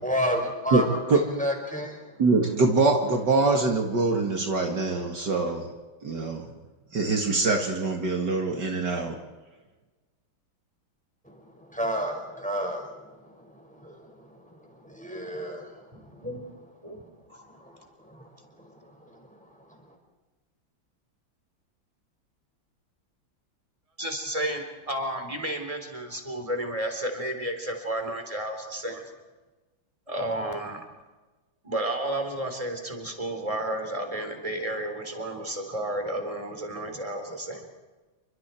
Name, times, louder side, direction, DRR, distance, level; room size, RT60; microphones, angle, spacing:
voice 1, 0.0-2.0 11.3-16.3 17.5-18.3 18.6-18.7 19.0-19.4, equal, 5° left, 2 dB, 5.3 m, -32 dB
voice 2, 2.2-5.7 6.0-6.5 6.9-9.2, right 3 dB, 60° right, 3 dB, 2.7 m, -24 dB
voice 3, 15.9-16.5 16.8-17.0 17.3-17.5 24.0-29.0 30.1-30.8 31.6-37.7, right 1 dB, 15° right, 4 dB, 3.8 m, -32 dB
29.0 x 25.0 x 4.5 m, 1.2 s
omnidirectional pair, 2.1 m